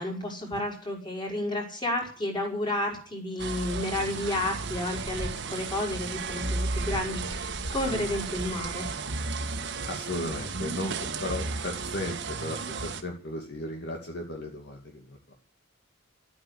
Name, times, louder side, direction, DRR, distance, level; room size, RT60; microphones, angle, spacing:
voice 1, 0.0-8.9, left 1 dB, 20° left, 1 dB, 5.2 m, -31 dB
sound 1, 3.4-13.0, right 3 dB, 55° right, 1.7 m, -33 dB
voice 2, 9.8-15.3, left 1 dB, 50° left, 1 dB, 2.6 m, -36 dB
12.5 x 9.7 x 9.9 m, 0.43 s
head